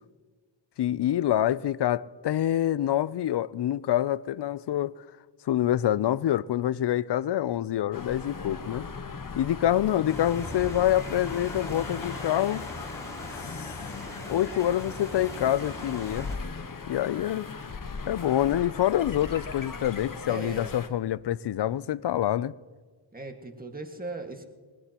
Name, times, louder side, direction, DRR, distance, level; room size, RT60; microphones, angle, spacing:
voice 1, 0.8-4.9 5.5-8.8 9.4-12.7 13.6-13.7 14.3-16.3 16.9-17.5 18.1-22.5, left 12 dB, 65° left, 0.5 m, -26 dB
sound 1, 7.9-20.9, left 4 dB, 45° left, 1.2 m, -39 dB
voice 2, 9.7-10.0 20.3-20.7 23.1-24.4, right 2 dB, 20° right, 1.8 m, -38 dB
sound 2, 10.1-16.4, left 1 dB, 5° left, 4.0 m, -40 dB
20.0 x 19.5 x 3.0 m
cardioid pair, 65°, 46 cm